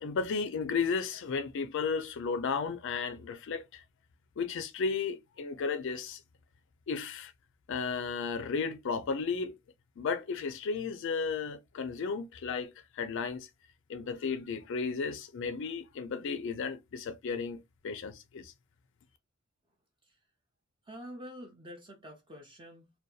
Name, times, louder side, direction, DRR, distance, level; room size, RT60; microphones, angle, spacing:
voice 1, 0.0-3.8 4.4-6.2 6.9-7.3 7.7-9.5 10.0-13.5 13.9-18.5, left 5 dB, 60° left, 0.4 m, -34 dB
voice 2, 20.8-22.9, equal, 20° right, 0.4 m, -47 dB
2.6 x 2.2 x 2.3 m
head